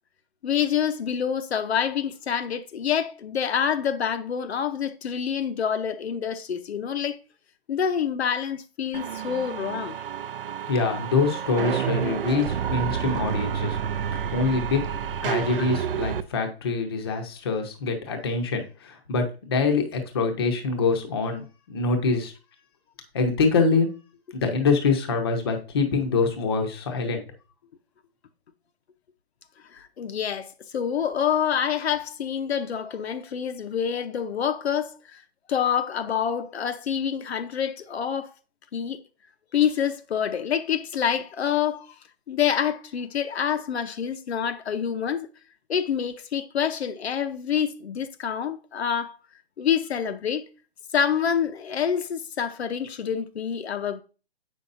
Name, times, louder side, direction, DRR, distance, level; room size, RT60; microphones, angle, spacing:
voice 1, 0.4-7.2 7.7-10.0 29.7-35.2 35.5-38.3 38.7-39.0 39.5-41.9 42.3-45.3 45.7-49.2 49.6-50.4 50.9-54.0, left 8 dB, 85° left, 0.8 m, -27 dB
sound 1, 8.9-16.2, right 8 dB, 60° right, 0.5 m, -29 dB
voice 2, 10.7-13.8 14.1-14.8 15.2-22.3 23.1-23.9 24.3-27.2, left 4 dB, 25° left, 0.7 m, -25 dB
7.6 x 5.5 x 2.5 m
hypercardioid pair, 170°, 31 cm